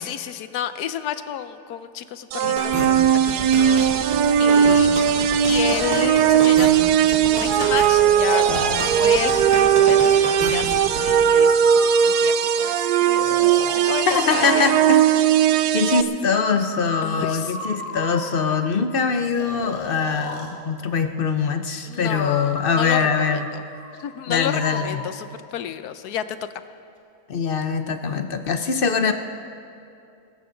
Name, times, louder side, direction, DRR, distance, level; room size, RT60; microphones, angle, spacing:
voice 1, 0.0-5.0 5.5-6.7 7.0-8.4 9.0-14.7 17.0-17.6 21.9-23.6 24.0-26.4, left 10 dB, 80° left, 12 dB, 1.2 m, -31 dB
sound 1, 2.3-16.0, right 9 dB, 90° right, 1.2 m, -18 dB
sound 2, 2.6-11.1, right 1 dB, 55° right, 2.9 m, -30 dB
Breathing, 7.8-9.6 10.9-12.6 13.1-14.9 16.3-18.6 19.3-20.5 22.1-25.0, left 1 dB, 35° left, 2.1 m, -34 dB
voice 2, 14.1-15.0 15.7-23.4 24.3-25.0 27.3-29.1, left 5 dB, 50° left, 8 dB, 0.7 m, -23 dB
23.5 x 14.0 x 3.9 m, 2.6 s
omnidirectional pair, 1.7 m